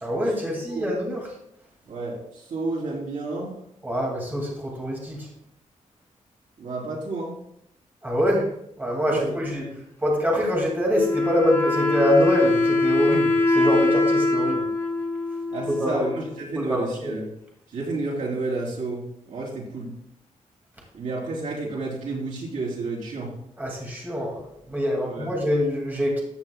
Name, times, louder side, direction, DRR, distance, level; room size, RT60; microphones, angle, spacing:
voice 1, 0.0-1.4 3.8-5.3 8.0-8.5 8.8-9.7 10.0-14.7 15.7-16.0 16.5-17.1 23.6-26.2, equal, 15° right, -2 dB, 2.2 m, -25 dB
voice 2, 1.9-3.6 6.6-7.4 9.1-9.8 15.5-17.2 17.7-19.0 19.3-19.9 20.9-23.3 25.1-25.3, right 3 dB, 80° right, -4 dB, 3.6 m, -31 dB
Wind instrument woodwind instrument, 10.9-16.4, left 2 dB, 20° left, 2.0 m, -23 dB
14.0 x 8.2 x 2.3 m, 0.75 s
wide cardioid pair, 160°, 13 cm